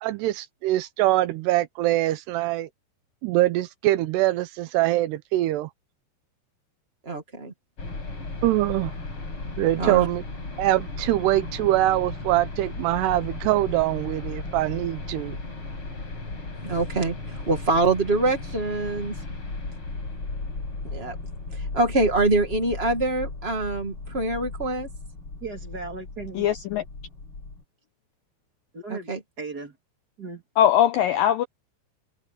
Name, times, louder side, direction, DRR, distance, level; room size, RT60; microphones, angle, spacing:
voice 1, 0.0-2.7 3.2-5.7 8.4-8.9 9.6-10.2 10.6-15.4, right 15 dB, 80° right, 2.7 m, -23 dB
voice 2, 7.0-7.5 9.8-10.1 16.6-19.1 20.8-21.1 21.5-24.9 28.9-29.2, right 2 dB, 45° right, 0.7 m, -25 dB
sound 1, 7.8-27.6, left 3 dB, 30° left, 6.0 m, -36 dB
voice 3, 25.4-26.5 28.7-29.1 29.4-29.8 30.2-30.4, right 4 dB, 30° right, 2.4 m, -36 dB
voice 4, 26.4-26.8 30.6-31.4, left 10 dB, 80° left, 2.1 m, -20 dB
omnidirectional pair, 5.0 m